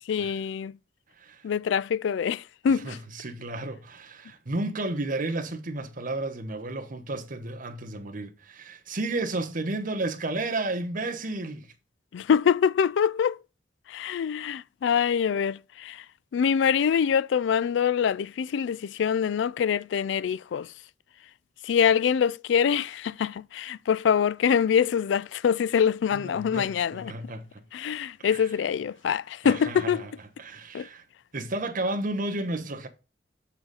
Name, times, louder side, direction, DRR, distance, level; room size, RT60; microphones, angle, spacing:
voice 1, 0.1-0.7 1.4-3.0 12.1-13.4 13.9-16.0 16.3-20.7 21.6-27.1 27.7-30.0 30.7-30.9, left 7 dB, 70° left, 0.3 m, -25 dB
voice 2, 1.2-1.5 2.7-11.7 26.1-27.6 28.2-28.5 29.4-30.1 30.4-31.0 31.3-32.9, right 2 dB, 45° right, 1.1 m, -32 dB
7.1 x 4.1 x 4.8 m
head